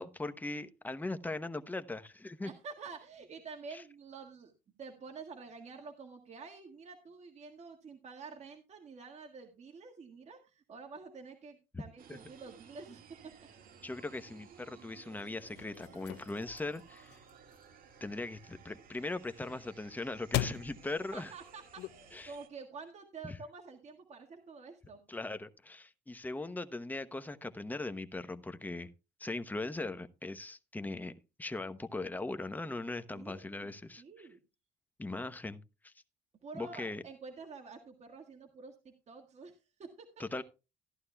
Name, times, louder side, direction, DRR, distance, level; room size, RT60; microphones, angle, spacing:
voice 1, 0.0-2.5 3.7-3.8 11.7-11.8 12.1-12.2 13.8-17.2 18.0-21.3 22.1-22.3 23.2-23.4 25.1-28.9 29.2-31.1 31.4-34.0 35.0-35.9 36.5-37.0 40.2-40.4, left 2 dB, 10° left, 0.9 m, -39 dB
voice 2, 2.4-4.5 4.8-13.3 20.5-20.6 21.1-25.0 33.1-34.4 36.4-40.2, right 4 dB, 40° right, 1.8 m, -49 dB
sound 1, 12.0-22.5, right 7 dB, 60° right, 1.8 m, -58 dB
sound 2, 15.3-22.4, left 14 dB, 85° left, 0.5 m, -42 dB
14.5 x 11.5 x 2.3 m
cardioid pair, 110°, 17 cm